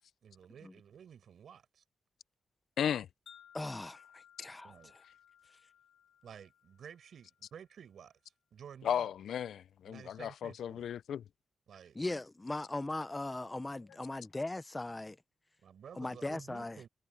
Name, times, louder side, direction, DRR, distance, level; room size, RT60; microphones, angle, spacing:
voice 1, 0.2-1.8 4.6-4.9 6.2-9.1 9.9-10.9 11.7-12.0 15.6-16.9, right 8 dB, 65° right, 6.0 m, -52 dB
voice 2, 2.8-3.1 8.8-11.2, left 9 dB, 80° left, 0.4 m, -35 dB
Wind chime, 3.3-7.5, left 9 dB, 65° left, 1.7 m, -61 dB
voice 3, 3.5-4.7 12.0-15.2 16.0-16.8, left 2 dB, 15° left, 0.6 m, -39 dB
wide cardioid pair, 150°, 0 cm